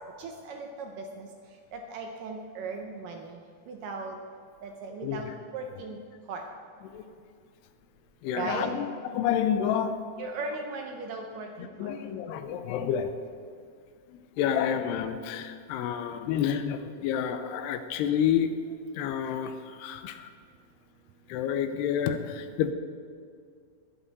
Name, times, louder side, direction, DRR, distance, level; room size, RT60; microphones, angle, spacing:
voice 1, 0.2-1.3 1.7-3.4 3.7-4.2 4.6-6.0 6.3-6.5 8.3-8.7 10.2-11.9, right 3 dB, 75° right, 3 dB, 2.0 m, -37 dB
voice 2, 5.0-5.3 6.8-7.0 8.2-10.0 11.6-13.1 14.1-18.5 19.0-19.5 19.8-20.3 21.3-22.7, left 9 dB, 80° left, 9 dB, 2.7 m, -29 dB
21.5 x 8.0 x 4.1 m, 2.2 s
omnidirectional pair, 4.8 m